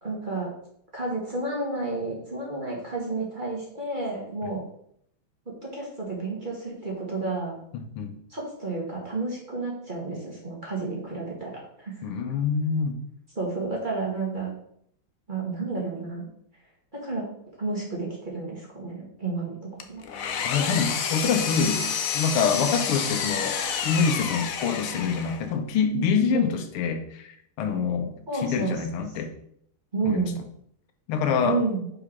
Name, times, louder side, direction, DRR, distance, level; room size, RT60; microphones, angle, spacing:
voice 1, 0.0-0.5 0.9-4.6 5.4-7.6 8.3-11.9 13.3-14.5 15.3-16.3 16.9-17.3 17.6-19.6 19.9-20.0 26.3-26.4 28.3-28.8 29.9-30.3 31.4-31.9, right 3 dB, 25° right, -3 dB, 1.7 m, -31 dB
voice 2, 7.7-8.1 12.0-13.0 20.4-23.6 23.8-29.3 30.0-30.3 31.1-31.6, left 6 dB, 85° left, 6 dB, 1.8 m, -26 dB
Engine, 19.8-25.5, left 7 dB, 65° left, 0.8 m, -29 dB
5.2 x 4.8 x 5.9 m, 0.69 s
omnidirectional pair, 2.3 m